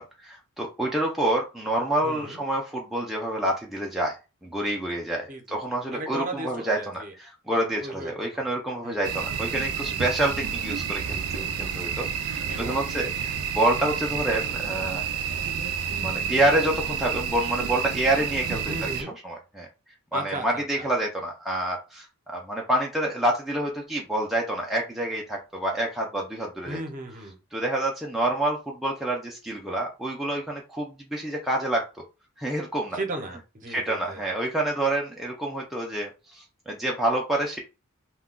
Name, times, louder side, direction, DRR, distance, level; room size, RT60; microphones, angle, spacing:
voice 1, 0.0-4.2 4.4-15.0 15.9-19.7 20.1-22.1 22.3-26.8 27.5-31.8 32.4-33.0 33.7-37.6, right 1 dB, ahead, -2 dB, 0.4 m, -28 dB
voice 2, 2.0-2.4 5.3-7.1 7.8-8.1 8.8-9.0 12.5-12.8 18.7-19.1 20.1-20.9 26.6-27.4 32.9-34.2, right 2 dB, 35° right, 4 dB, 0.7 m, -36 dB
sound 1, 9.0-19.0, right 7 dB, 85° right, 0.4 m, -30 dB
2.2 x 2.2 x 3.7 m, 0.28 s
head